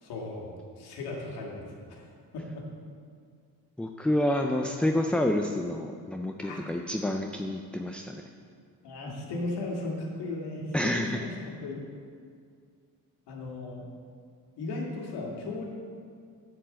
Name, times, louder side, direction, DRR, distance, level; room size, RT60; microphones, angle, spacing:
voice 1, 0.0-2.6 6.4-6.6 8.8-11.8 13.3-13.9 14.6-15.7, left 2 dB, 90° left, -1 dB, 1.9 m, -36 dB
voice 2, 3.8-8.2 10.7-11.2, left 1 dB, 5° left, 4 dB, 0.3 m, -28 dB
9.2 x 4.6 x 7.5 m, 2.2 s
cardioid pair, 100°, 38 cm